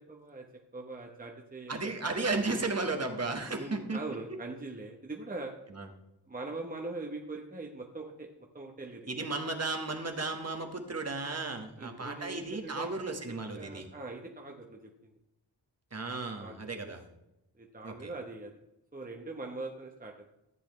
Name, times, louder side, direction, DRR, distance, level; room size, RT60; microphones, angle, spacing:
voice 1, 0.1-0.4 0.7-1.9 3.0-3.2 3.6-5.5 6.3-8.3 8.5-9.1 11.8-13.2 13.5-15.1 16.4-16.7 17.6-18.5 18.9-20.1, right 2 dB, 20° right, 1 dB, 1.0 m, -42 dB
voice 2, 1.7-4.0 5.7-5.9 9.1-13.9 15.9-17.0 17.8-18.1, right 3 dB, 40° right, 5 dB, 1.5 m, -34 dB
14.0 x 8.2 x 3.2 m, 0.90 s
wide cardioid pair, 90°, 41 cm